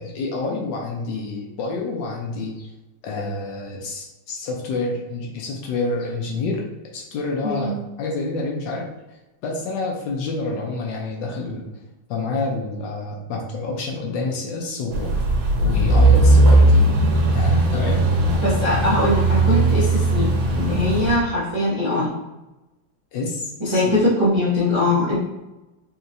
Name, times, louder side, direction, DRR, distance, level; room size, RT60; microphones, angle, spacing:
voice 1, 0.0-2.7 3.0-6.6 6.9-8.9 9.4-11.7 12.1-15.1 15.6-16.8 17.3-18.1 23.1-24.0, left 3 dB, 70° left, 0 dB, 1.2 m, -28 dB
sound 1, 14.9-21.2, right 2 dB, 75° right, 1.5 m, -17 dB
voice 2, 18.4-20.3 20.6-22.1 23.6-25.2, left 1 dB, 35° right, -9 dB, 0.4 m, -21 dB
4.3 x 2.8 x 2.5 m, 1.0 s
omnidirectional pair, 2.2 m